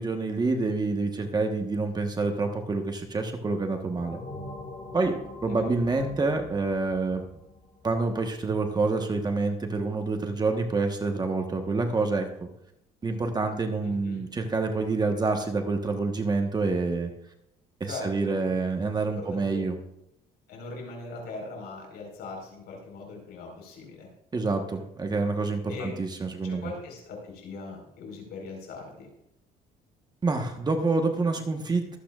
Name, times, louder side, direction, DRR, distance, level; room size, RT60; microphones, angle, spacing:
voice 1, 0.0-4.2 4.9-5.1 5.4-7.4 7.8-12.5 13.0-17.1 17.8-19.8 24.3-26.7 30.2-32.0, right 3 dB, 25° right, 4 dB, 1.2 m, -27 dB
sound 1, 4.0-8.4, left 2 dB, 35° left, 2.1 m, -43 dB
voice 2, 13.8-14.2 17.9-18.5 19.0-19.6 20.5-24.1 25.7-25.9 26.4-29.1, left 3 dB, 75° left, 1 dB, 4.6 m, -40 dB
23.0 x 8.7 x 2.4 m, 0.80 s
cardioid pair, 110°, 17 cm